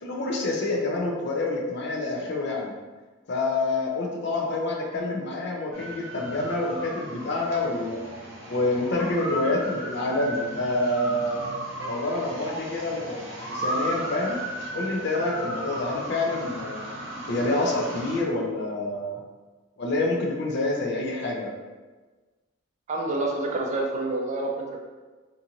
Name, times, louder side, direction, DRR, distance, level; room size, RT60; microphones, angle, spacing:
voice 1, 0.0-2.7 3.3-8.0 8.5-11.5 11.9-14.4 14.7-16.8 17.3-19.2 19.8-21.5, left 2 dB, 55° left, -1 dB, 0.5 m, -27 dB
sound 1, 5.7-18.2, right 1 dB, 70° right, 0.7 m, -35 dB
voice 2, 22.9-24.8, right 2 dB, 35° right, 0 dB, 0.4 m, -28 dB
2.6 x 2.4 x 2.8 m, 1.3 s
head